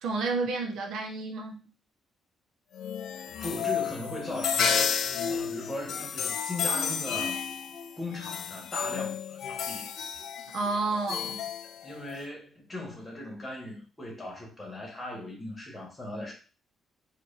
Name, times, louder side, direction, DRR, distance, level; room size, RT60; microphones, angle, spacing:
voice 1, 0.0-1.7 10.5-11.4, right 3 dB, 75° right, 2 dB, 0.8 m, -30 dB
sound 1, 2.7-12.3, left 7 dB, 70° left, 0.4 m, -32 dB
voice 2, 3.4-4.9 5.3-7.4 8.0-9.9 11.8-16.3, left 1 dB, 20° left, -1 dB, 1.7 m, -38 dB
4.4 x 2.5 x 2.8 m, 0.36 s
cardioid pair, 90°, 0 cm